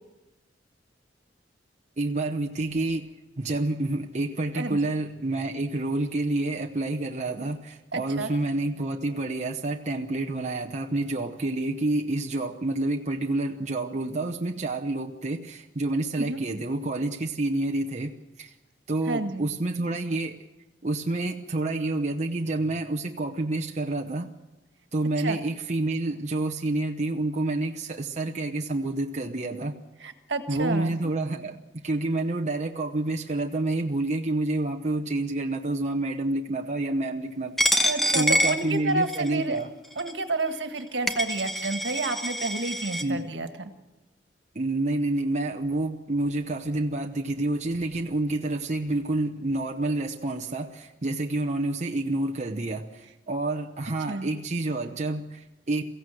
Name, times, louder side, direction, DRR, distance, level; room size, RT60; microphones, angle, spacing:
voice 1, 2.0-3.1 3.4-18.5 18.9-20.4 20.8-24.3 24.9-29.8 30.5-39.7 43.0-43.3 44.5-55.8, right 2 dB, 40° right, 3 dB, 0.9 m, -28 dB
voice 2, 7.9-8.3 16.2-16.4 19.1-19.4 25.2-25.4 30.0-31.0 37.8-39.6 40.0-43.7 54.1-54.3, right 2 dB, 70° right, 7 dB, 1.8 m, -30 dB
Coin (dropping), 37.6-39.3 40.0-40.1 40.8-40.9 41.1-43.0, equal, ahead, 1.1 m, -26 dB
23.0 x 16.0 x 7.8 m, 1.1 s
head